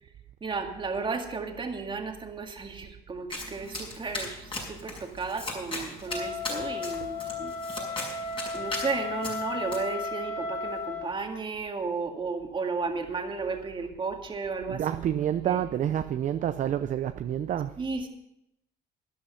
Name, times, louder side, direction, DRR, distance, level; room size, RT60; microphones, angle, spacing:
voice 1, 0.4-8.0 8.5-14.8 15.4-15.6 17.8-18.1, right 4 dB, 30° right, 2.0 m, -34 dB
Domestic sounds home sounds, 3.3-9.8, left 2 dB, 30° left, 5.7 m, -38 dB
Wind instrument woodwind instrument, 6.1-11.1, left 4 dB, 85° left, 2.6 m, -34 dB
voice 2, 14.7-17.8, right 10 dB, 50° right, 0.6 m, -28 dB
12.5 x 11.0 x 5.7 m
cardioid pair, 110°, 17 cm